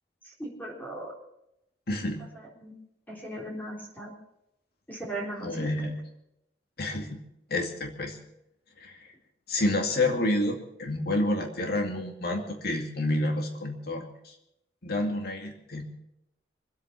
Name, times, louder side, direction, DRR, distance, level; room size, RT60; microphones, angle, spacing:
voice 1, 0.2-1.1 2.3-2.7 3.1-4.1 4.9-5.9, right 1 dB, 10° left, -5 dB, 4.0 m, -38 dB
voice 2, 1.9-2.2 5.4-5.9 6.8-7.2 7.5-8.2 8.8-8.9 9.5-14.3 14.8-15.8, left 1 dB, 60° left, 3 dB, 2.3 m, -29 dB
25.0 x 8.4 x 6.1 m, 0.82 s
head